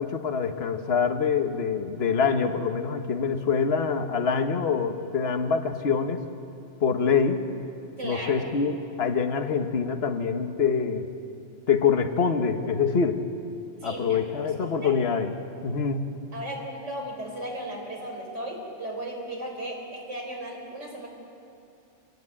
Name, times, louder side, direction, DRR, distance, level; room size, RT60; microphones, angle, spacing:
voice 1, 0.0-6.2 6.8-7.4 8.0-11.1 11.7-13.2 13.8-15.3 15.6-16.1, left 6 dB, 60° left, 5 dB, 1.5 m, -25 dB
voice 2, 8.0-8.5 13.8-14.5 14.8-14.9 16.3-21.1, right 1 dB, 75° right, 1 dB, 5.0 m, -36 dB
25.5 x 18.0 x 8.8 m, 2.7 s
omnidirectional pair, 1.2 m